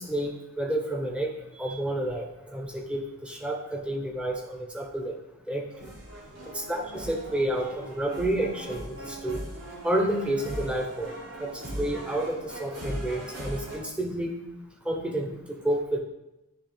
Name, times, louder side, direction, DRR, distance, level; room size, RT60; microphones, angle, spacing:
voice 1, 0.0-5.2 5.5-5.9 6.5-9.4 9.8-11.1 11.4-14.4 14.8-16.0, right 1 dB, 5° right, 1 dB, 0.6 m, -30 dB
sound 1, 5.7-13.8, equal, 55° right, 1.7 m, -39 dB
10.0 x 3.4 x 3.3 m, 0.96 s
head